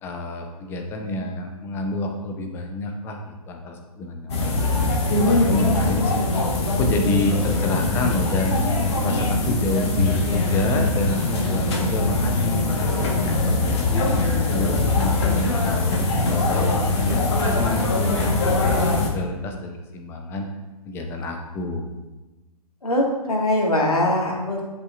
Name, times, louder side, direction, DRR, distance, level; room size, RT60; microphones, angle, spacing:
voice 1, 0.0-4.7 5.2-6.3 6.7-8.6 9.0-14.1 14.4-16.0 16.3-18.3 18.6-20.5 20.9-21.9, left 1 dB, 10° left, 4 dB, 0.5 m, -28 dB
sound 1, 4.3-19.1, left 2 dB, 45° left, 1.2 m, -22 dB
voice 2, 22.8-24.6, left 1 dB, 70° left, -1 dB, 1.8 m, -22 dB
10.5 x 5.5 x 2.5 m, 1.1 s
figure-of-eight pair, 125°, 20 cm